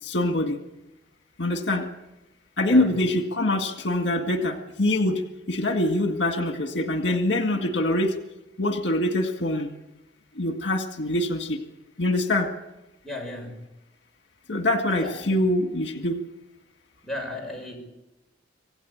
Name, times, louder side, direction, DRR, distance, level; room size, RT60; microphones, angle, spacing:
voice 1, 0.0-0.6 1.4-1.9 2.6-8.2 8.6-9.7 10.4-11.6 12.0-12.5 14.5-16.2, left 1 dB, 70° left, 4 dB, 2.0 m, -24 dB
voice 2, 13.0-13.6 14.9-15.4 17.0-17.8, left 1 dB, ahead, -1 dB, 6.6 m, -35 dB
26.5 x 16.5 x 8.8 m, 0.99 s
head